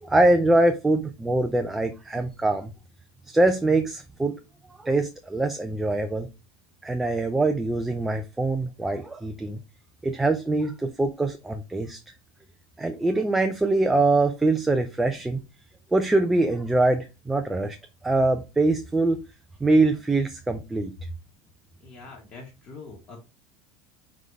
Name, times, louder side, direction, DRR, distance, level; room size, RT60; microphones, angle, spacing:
voice 1, 0.0-2.7 3.3-4.4 4.8-6.3 6.8-9.6 10.0-12.0 12.8-15.4 15.9-17.8 18.0-19.2 19.6-20.9, right 2 dB, 5° right, 0.4 m, -23 dB
voice 2, 21.8-23.3, left 3 dB, 25° left, 1.6 m, -44 dB
4.8 x 4.0 x 5.2 m
supercardioid pair, 175°, 4 cm